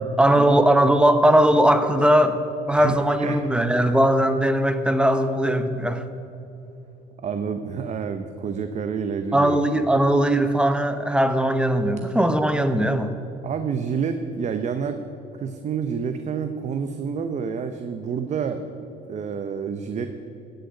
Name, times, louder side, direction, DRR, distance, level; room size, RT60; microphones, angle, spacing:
voice 1, 0.2-6.0 9.3-13.1, right 1 dB, 5° right, 9 dB, 0.9 m, -19 dB
voice 2, 2.7-3.4 7.2-9.8 13.4-15.0 15.3-18.7 19.1-20.1, right 6 dB, 45° right, 8 dB, 0.8 m, -28 dB
15.5 x 6.6 x 8.1 m, 2.9 s
cardioid pair, 110°, 17 cm